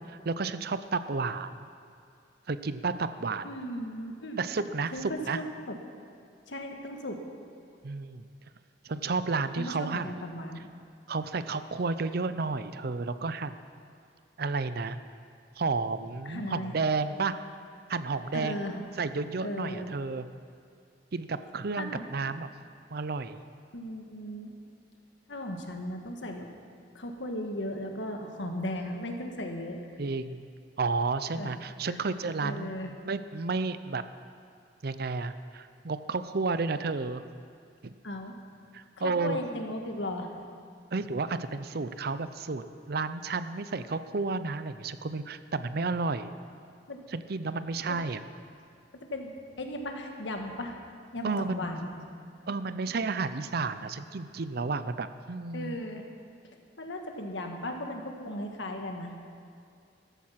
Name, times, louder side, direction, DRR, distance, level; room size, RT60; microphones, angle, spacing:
voice 1, 0.2-1.7 2.5-3.5 4.4-5.4 7.8-8.2 8.8-10.1 11.1-13.6 14.4-15.0 15.6-17.4 17.9-18.7 19.0-20.3 21.1-22.5 22.9-23.4 30.0-30.4 30.8-32.7 33.0-34.0 34.8-37.2 37.8-37.9 38.7-39.4 40.9-46.3 47.1-48.2 51.2-51.6 52.5-55.8, right 4 dB, 60° right, 12 dB, 0.6 m, -31 dB
voice 2, 3.4-4.4 4.9-5.7 6.5-7.2 9.6-10.6 16.2-16.7 18.3-18.8 19.4-19.9 21.8-22.0 23.7-24.5 25.3-26.5 26.9-29.8 31.3-31.5 32.4-32.9 38.0-38.3 39.0-40.3 46.9-47.0 47.9-48.0 49.1-50.8 51.1-51.9 55.5-56.1 56.8-59.1, left 1 dB, 85° left, 3 dB, 1.6 m, -36 dB
14.0 x 13.0 x 5.8 m, 2.3 s
head